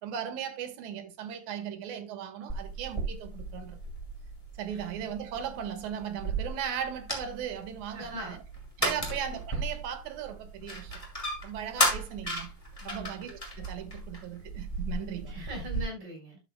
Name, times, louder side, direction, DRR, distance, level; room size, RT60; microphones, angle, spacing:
voice 1, 0.0-3.8 4.6-8.4 8.8-10.9 11.4-12.5 12.8-15.3, right 9 dB, 75° right, 2.5 m, -37 dB
sound 1, 2.5-15.8, right 1 dB, 10° left, 2.0 m, -35 dB
voice 2, 4.7-5.1 7.9-8.4 8.8-9.1 12.8-13.1 15.0-16.4, left 1 dB, 50° right, 5.3 m, -42 dB
11.5 x 7.0 x 2.2 m
omnidirectional pair, 3.7 m